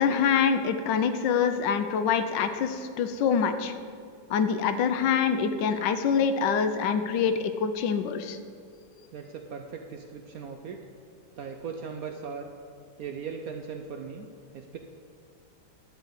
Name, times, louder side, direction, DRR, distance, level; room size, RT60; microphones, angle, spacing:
voice 1, 0.0-3.7 4.3-8.4, left 6 dB, 75° left, 9 dB, 1.3 m, -25 dB
voice 2, 9.1-10.8 11.4-12.5 13.0-14.3 14.5-14.8, right 6 dB, 70° right, 4 dB, 0.8 m, -38 dB
12.5 x 4.2 x 8.0 m, 2.3 s
omnidirectional pair, 2.0 m